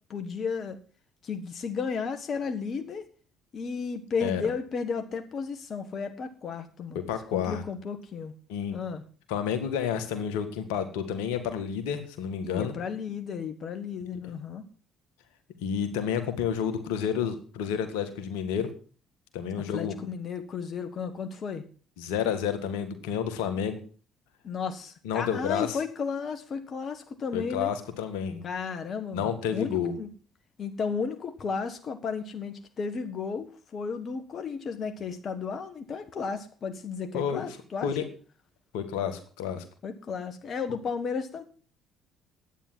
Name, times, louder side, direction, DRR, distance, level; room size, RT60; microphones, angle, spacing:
voice 1, 0.1-0.8 1.2-3.0 3.5-7.0 7.3-8.3 8.7-9.0 12.4-14.6 19.7-21.7 24.4-27.7 28.4-30.1 30.6-37.9 39.8-41.4, left 5 dB, 50° left, 8 dB, 1.5 m, -33 dB
voice 2, 7.1-7.6 8.5-8.8 9.3-12.7 15.6-18.7 19.3-20.0 22.0-23.8 25.0-25.8 27.3-28.4 29.1-29.9 37.1-37.5 37.8-38.0 38.7-39.6, left 8 dB, 80° left, 8 dB, 1.7 m, -30 dB
11.0 x 9.1 x 7.6 m, 0.42 s
hypercardioid pair, 55°, 0 cm